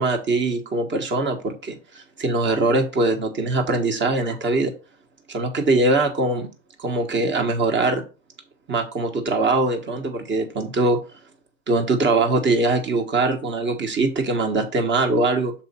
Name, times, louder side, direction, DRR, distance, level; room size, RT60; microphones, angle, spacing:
voice 1, 0.0-4.7 5.3-6.5 6.8-8.0 8.7-11.0 11.7-15.5, right 2 dB, 30° right, 6 dB, 1.4 m, -22 dB
6.1 x 4.4 x 4.3 m, 0.34 s
hypercardioid pair, 95°, 37 cm